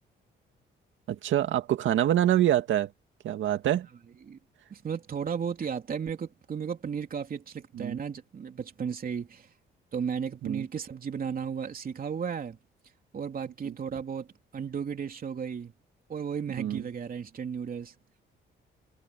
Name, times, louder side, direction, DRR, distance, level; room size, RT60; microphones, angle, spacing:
voice 1, 1.1-2.9 3.2-3.9 7.7-8.0 10.4-10.7 13.7-13.8 16.6-16.8, right 11 dB, 75° right, 2.2 m, -26 dB
voice 2, 4.7-9.5 9.9-12.6 13.1-14.3 14.5-15.7 16.1-17.9, right 7 dB, 45° right, 3.3 m, -34 dB
cardioid pair, 90°, 20 cm